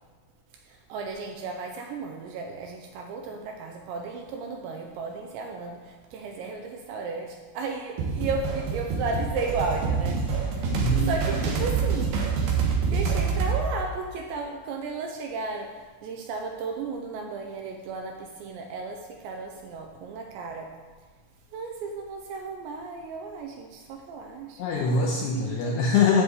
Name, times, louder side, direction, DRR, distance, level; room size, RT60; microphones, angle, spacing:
voice 1, 0.7-10.7 11.1-12.3 12.6-20.7 21.5-24.6 25.0-25.1 25.5-25.8, right 4 dB, 80° right, 2 dB, 2.7 m, -34 dB
sound 1, 8.0-13.6, right 5 dB, 65° right, 2.8 m, -26 dB
voice 2, 10.7-11.1 24.6-26.2, left 4 dB, 80° left, -1 dB, 2.4 m, -23 dB
10.5 x 5.0 x 8.1 m, 1.4 s
omnidirectional pair, 5.8 m